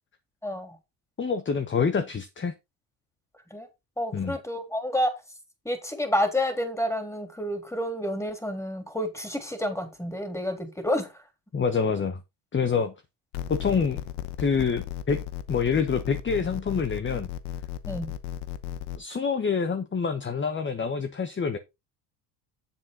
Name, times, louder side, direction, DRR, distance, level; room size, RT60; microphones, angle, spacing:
voice 1, 0.4-0.8 3.5-3.7 4.0-5.1 5.6-11.1 17.8-18.1, left 1 dB, 5° left, 3.4 m, -29 dB
voice 2, 1.2-2.5 4.1-4.3 11.5-12.2 12.5-12.9 13.5-14.0 14.4-17.3 18.9-21.6, left 5 dB, 25° left, 1.1 m, -26 dB
sound 1, 13.3-19.0, left 11 dB, 90° left, 1.1 m, -35 dB
8.7 x 7.5 x 3.9 m
supercardioid pair, 80°, 44 cm